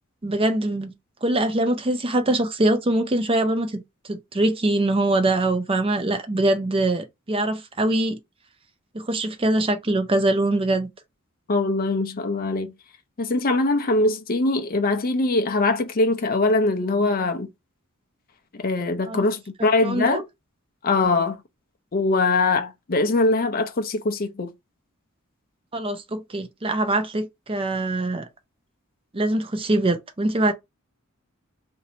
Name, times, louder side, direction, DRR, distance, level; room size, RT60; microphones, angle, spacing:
voice 1, 0.2-0.9 1.2-3.8 4.1-8.2 8.9-10.9 19.0-19.2 19.6-20.2 25.7-28.3 29.1-30.5, right 1 dB, 25° right, 0.6 m, -23 dB
voice 2, 11.5-12.7 13.2-17.5 18.5-20.2 20.8-21.4 21.9-24.5, left 2 dB, 45° left, 0.6 m, -22 dB
2.7 x 2.7 x 4.2 m
head